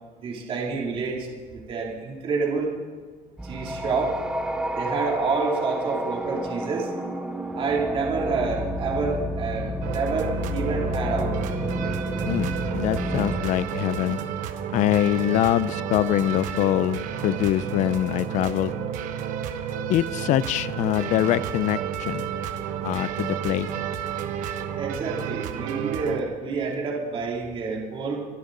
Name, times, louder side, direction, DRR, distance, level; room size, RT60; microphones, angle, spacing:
voice 1, 0.2-2.8 3.4-4.2 4.7-6.9 7.5-11.3 24.8-28.2, right 4 dB, 35° right, -2 dB, 2.9 m, -28 dB
sound 1, 3.4-13.4, equal, 5° right, 1.1 m, -30 dB
sound 2, 9.8-26.2, right 9 dB, 55° right, 1.3 m, -31 dB
voice 2, 12.3-14.2 14.7-18.7 19.9-22.3 22.8-23.7, left 13 dB, 50° left, 17 dB, 0.5 m, -24 dB
27.0 x 12.5 x 3.9 m, 1.5 s
cardioid pair, 165°, 16 cm